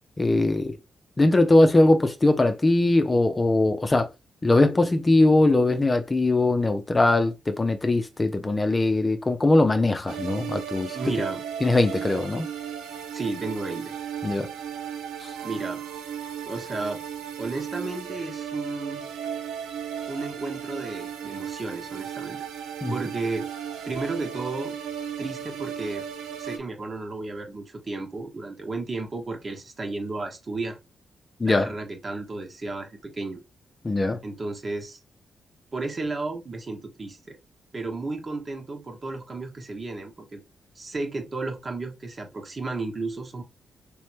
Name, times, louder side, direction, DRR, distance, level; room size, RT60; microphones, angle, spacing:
voice 1, 0.2-0.8 1.2-4.1 4.4-11.0 11.6-12.5 14.2-14.5 15.2-15.3 22.8-22.9 31.4-31.7 33.8-34.2, left 2 dB, 30° left, 0.7 m, -21 dB
sound 1, 10.1-26.6, right 8 dB, 80° right, 0.6 m, -35 dB
voice 2, 10.9-11.4 13.1-13.9 15.4-15.8 16.4-17.0 17.4-19.1 20.1-22.4 22.9-23.5 23.8-24.7 25.2-26.1 26.4-30.8 31.4-33.4 34.2-35.0 35.7-37.4 37.7-40.4 40.7-43.4, right 3 dB, 40° right, 1.3 m, -33 dB
3.4 x 3.2 x 3.0 m
hypercardioid pair, 45°, 0 cm